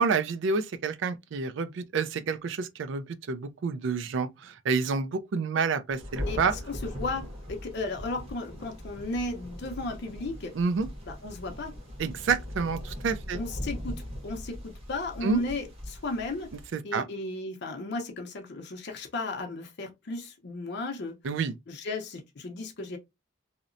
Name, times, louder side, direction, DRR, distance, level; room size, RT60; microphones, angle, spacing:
voice 1, 0.0-4.3 4.7-6.5 10.6-10.9 12.0-13.4 15.2-15.4 16.7-17.0 21.2-21.5, right 5 dB, 65° right, 0.4 m, -28 dB
Thunder, 5.9-16.7, equal, 30° right, 1.0 m, -40 dB
voice 2, 6.2-10.5 11.0-11.7 13.3-16.5 16.8-21.1 21.7-23.0, left 2 dB, 60° left, 0.6 m, -35 dB
2.8 x 2.0 x 2.5 m
head